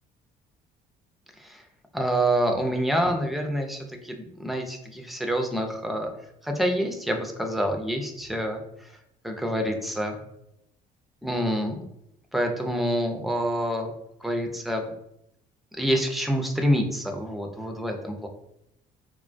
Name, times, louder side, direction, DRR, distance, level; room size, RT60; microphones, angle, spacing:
voice 1, 1.9-6.1 6.4-8.9 9.2-10.2 11.2-11.8 12.3-13.9 14.2-14.8 15.8-18.3, equal, ahead, 3 dB, 0.3 m, -27 dB
2.3 x 2.2 x 2.4 m, 0.79 s
cardioid pair, 110°, 17 cm